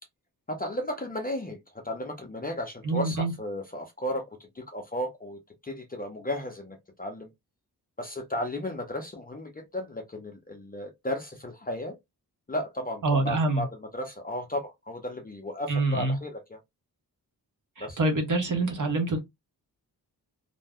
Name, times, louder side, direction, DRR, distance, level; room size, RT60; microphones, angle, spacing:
voice 1, 0.5-1.6 1.8-4.3 4.6-7.3 8.0-12.0 12.5-16.6 17.8-18.0, left 1 dB, 25° left, 0.5 m, -34 dB
voice 2, 2.8-3.3 13.0-13.6 15.7-16.2 17.8-19.2, right 2 dB, 50° right, 1.0 m, -26 dB
2.5 x 2.1 x 3.4 m
wide cardioid pair, 175°, 39 cm